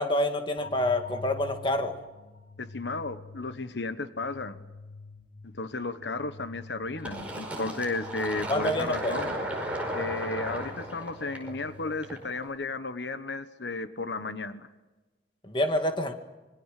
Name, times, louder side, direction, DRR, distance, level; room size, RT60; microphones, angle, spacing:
voice 1, 0.0-1.9 8.5-9.1 15.4-16.1, left 1 dB, 25° left, 6 dB, 1.9 m, -27 dB
sound 1, 0.6-12.5, left 3 dB, 50° left, 2.7 m, -47 dB
voice 2, 2.6-4.6 5.4-9.3 9.9-14.7, left 3 dB, 85° left, 12 dB, 1.2 m, -34 dB
Fill (with liquid), 7.0-12.4, right 1 dB, 10° right, 5.0 m, -35 dB
25.5 x 22.5 x 6.7 m, 1.2 s
head